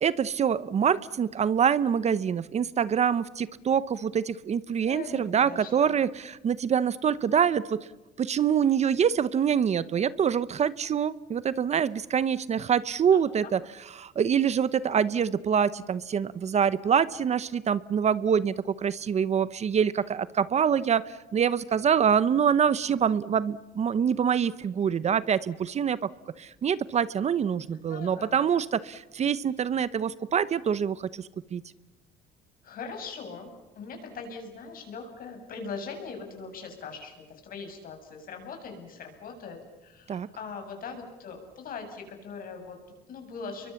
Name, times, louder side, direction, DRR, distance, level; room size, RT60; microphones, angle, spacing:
voice 1, 0.0-7.9 8.2-13.6 13.9-26.1 26.4-31.6 40.1-40.3, right 7 dB, 40° right, 17 dB, 0.9 m, -25 dB
voice 2, 4.9-6.0 13.1-13.2 27.9-28.4 32.6-43.7, left 5 dB, 55° left, 4 dB, 7.6 m, -41 dB
30.0 x 23.5 x 7.1 m, 1.1 s
cardioid pair, 110°, 17 cm